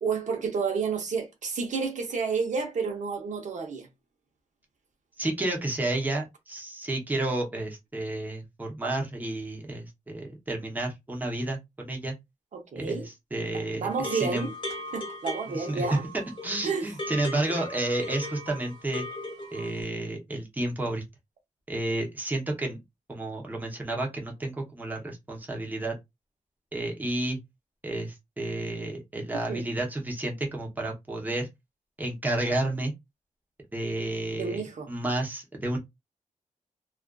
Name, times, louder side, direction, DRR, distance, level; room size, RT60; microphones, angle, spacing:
voice 1, 0.0-3.9 12.5-13.1 13.7-14.5 14.9-16.0 16.6-16.9 29.5-29.6 34.4-34.9, right 5 dB, 70° right, 0.7 m, -30 dB
voice 2, 5.2-12.1 12.8-13.0 13.3-14.5 15.5-16.0 16.4-19.1 19.5-21.0 21.7-22.8 23.1-26.0 26.7-27.4 27.8-31.5 32.0-32.9 33.7-35.8, right 2 dB, 15° right, 0.7 m, -31 dB
sound 1, 13.9-19.8, left 1 dB, 40° left, 1.0 m, -38 dB
2.4 x 2.4 x 2.2 m
wide cardioid pair, 140°, 13 cm